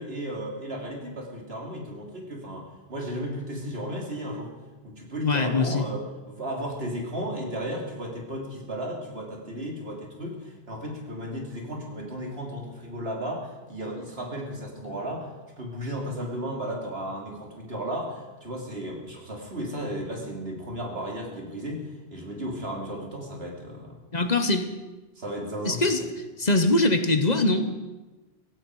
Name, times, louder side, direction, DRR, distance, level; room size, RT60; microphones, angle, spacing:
voice 1, 0.0-4.5 4.8-23.9 25.2-25.8, equal, 80° right, 0 dB, 3.3 m, -34 dB
voice 2, 5.2-5.8 24.1-24.7 25.6-26.0 26.4-27.7, left 2 dB, 45° left, 8 dB, 1.2 m, -22 dB
16.5 x 16.0 x 4.9 m, 1.2 s
omnidirectional pair, 1.0 m